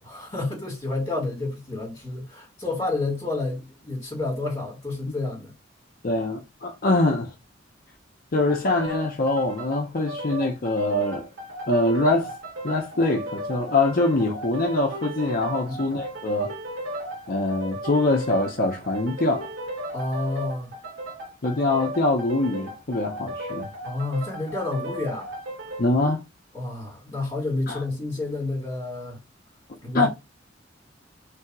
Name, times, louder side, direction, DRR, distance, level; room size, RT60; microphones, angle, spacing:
voice 1, 0.0-5.5 15.7-15.9 19.9-20.7 23.8-25.3 26.5-29.2 29.8-30.1, left 2 dB, 25° left, 1.8 m, -30 dB
voice 2, 6.0-7.3 8.3-11.3 11.7-12.3 12.6-16.5 17.3-19.5 21.4-23.7 25.8-26.2 27.7-27.8 29.9-30.1, left 2 dB, 50° left, 0.7 m, -23 dB
sound 1, 8.5-25.9, right 1 dB, 90° right, 1.2 m, -36 dB
3.3 x 2.8 x 4.6 m
head